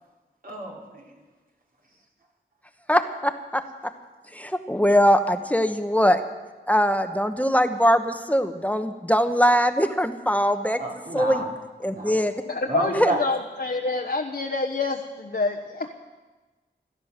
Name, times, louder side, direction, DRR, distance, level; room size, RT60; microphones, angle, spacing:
voice 1, 0.4-1.1 10.8-11.5 11.9-12.1 12.7-13.2, right 2 dB, 50° right, -1 dB, 3.3 m, -30 dB
voice 2, 2.9-3.9 4.3-6.2 6.7-10.8 11.1-11.4 11.8-12.3 12.9-13.1, equal, 10° left, 8 dB, 1.2 m, -22 dB
voice 3, 12.5-15.9, left 3 dB, 60° left, 2 dB, 1.2 m, -27 dB
16.5 x 13.0 x 6.7 m, 1.2 s
wide cardioid pair, 55°, 19 cm